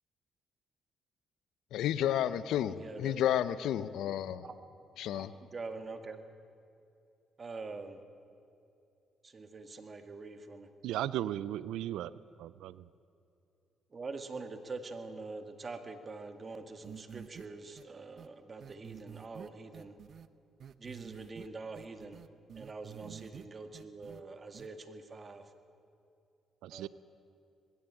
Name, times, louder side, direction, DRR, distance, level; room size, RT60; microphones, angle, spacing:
voice 1, 1.7-4.4 5.0-5.3, left 11 dB, 80° left, 15 dB, 0.8 m, -31 dB
voice 2, 2.7-3.3 4.4-4.6 5.1-6.2 7.4-8.0 9.2-10.6 13.9-20.0 20.8-22.2 22.6-25.5 26.7-26.9, right 3 dB, 35° right, 8 dB, 2.0 m, -45 dB
voice 3, 10.8-12.1 12.4-12.9 23.0-23.2 26.6-26.9, right 12 dB, 90° right, 18 dB, 0.5 m, -36 dB
sound 1, 16.8-17.5 17.8-17.9 18.2-18.3 18.6-20.3 20.6-21.5 21.8-23.5 23.7-24.2 24.5-24.7, right 8 dB, 60° right, 0.8 m, -49 dB
20.5 x 16.5 x 9.0 m, 2.6 s
cardioid pair, 90°, 0 cm